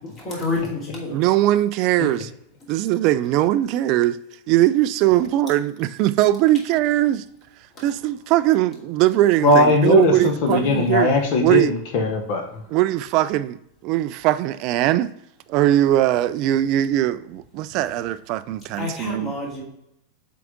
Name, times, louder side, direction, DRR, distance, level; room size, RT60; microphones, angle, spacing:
voice 1, 0.2-1.2 18.8-19.6, left 3 dB, 30° left, 2.6 m, -28 dB
voice 2, 1.1-2.3 2.7-4.2 4.5-7.2 7.8-11.1 11.4-11.7 12.7-13.6 13.8-15.1 15.5-19.3, right 14 dB, 40° right, 0.3 m, -20 dB
voice 3, 9.4-12.6, left 2 dB, 45° left, 1.1 m, -19 dB
7.6 x 3.8 x 3.6 m
figure-of-eight pair, 90°, 0 cm